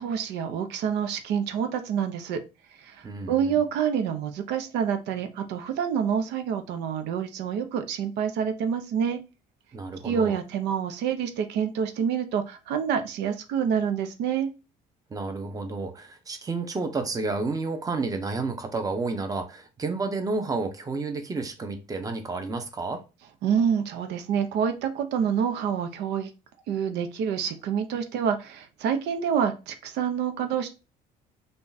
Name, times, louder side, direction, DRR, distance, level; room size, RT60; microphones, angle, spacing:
voice 1, 0.0-2.4 2.8-9.2 10.0-14.5 23.4-26.3 26.7-30.7, right 7 dB, 85° right, 0.7 m, -27 dB
voice 2, 3.0-3.6 9.7-10.4 15.1-23.0, right 3 dB, 20° right, 0.8 m, -31 dB
3.6 x 2.4 x 4.0 m
cardioid pair, 110°, 17 cm